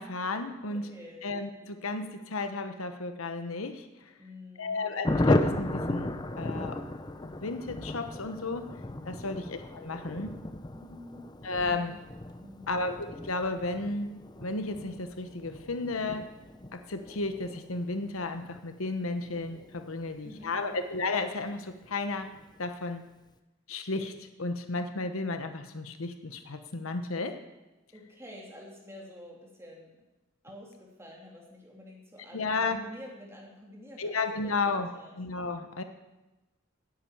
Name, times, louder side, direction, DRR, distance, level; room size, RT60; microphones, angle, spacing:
voice 1, 0.0-0.9 1.2-4.1 4.6-6.8 7.2-8.6 9.0-10.3 11.4-11.9 12.7-14.1 14.4-16.3 16.7-22.3 22.6-23.0 23.7-27.4 32.3-32.8 34.0-34.9 35.2-35.8, left 3 dB, 80° left, 8 dB, 1.1 m, -33 dB
voice 2, 0.7-1.2 4.2-4.9 9.2-9.5 10.7-11.3 11.5-12.0 12.4-12.8 20.1-20.8 27.9-30.0 30.4-35.2, left 1 dB, 15° right, -2 dB, 3.0 m, -49 dB
Thunder, 5.0-21.2 21.5-21.6 21.8-22.0 22.2-22.6, left 1 dB, 20° left, 0.7 m, -35 dB
10.5 x 8.5 x 8.8 m, 1.1 s
head